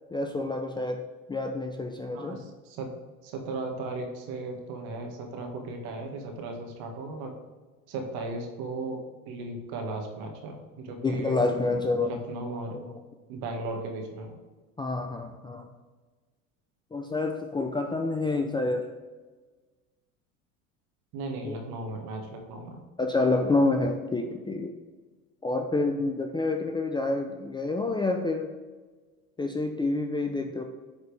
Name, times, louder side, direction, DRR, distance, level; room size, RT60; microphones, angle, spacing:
voice 1, 0.1-1.0 1.3-2.4 11.0-12.1 12.7-12.9 14.8-15.7 16.9-18.9 21.4-21.6 23.0-24.7 25.4-28.5 29.4-30.6, left 2 dB, 10° left, 4 dB, 0.4 m, -28 dB
voice 2, 2.1-2.9 3.2-7.4 7.9-11.4 12.0-12.8 13.3-14.4 21.1-22.9, right 2 dB, 60° right, 2 dB, 1.7 m, -36 dB
8.4 x 4.3 x 3.4 m, 1.3 s
hypercardioid pair, 80°, 42 cm